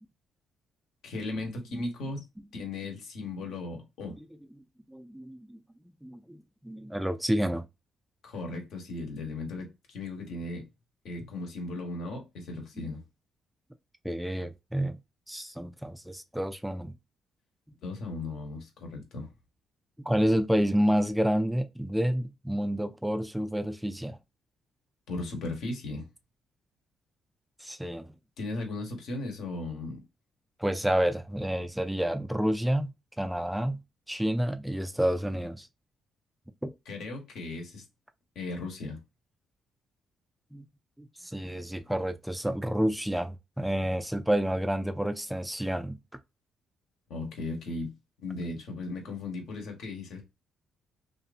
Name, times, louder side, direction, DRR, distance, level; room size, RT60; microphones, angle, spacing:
voice 1, 1.0-2.3 2.5-4.2 8.2-10.7 11.0-13.0 17.8-19.3 25.1-26.0 28.4-30.0 36.9-37.8 38.3-39.0 47.1-47.9 48.2-50.2, left 2 dB, 75° left, 1.1 m, -36 dB
voice 2, 4.9-5.6 6.0-7.6 12.8-12.9 14.0-15.0 15.3-17.0 20.0-24.2 27.6-28.1 30.6-35.7 36.6-36.7 40.5-40.6 41.0-46.0, equal, 5° right, 0.3 m, -29 dB
2.7 x 2.5 x 2.4 m
cardioid pair, 90°, 0 cm